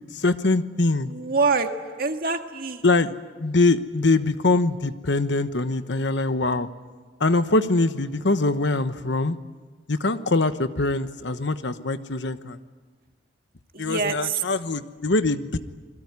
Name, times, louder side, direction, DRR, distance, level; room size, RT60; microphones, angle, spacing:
voice 1, 0.1-1.1 2.8-3.1 3.4-6.7 7.2-9.4 9.9-12.6 13.8-15.6, left 2 dB, 65° left, 11 dB, 1.1 m, -23 dB
voice 2, 1.1-1.7 2.0-2.8 13.7-14.4, right 4 dB, 50° right, 5 dB, 1.8 m, -25 dB
27.5 x 22.5 x 9.7 m, 1.4 s
head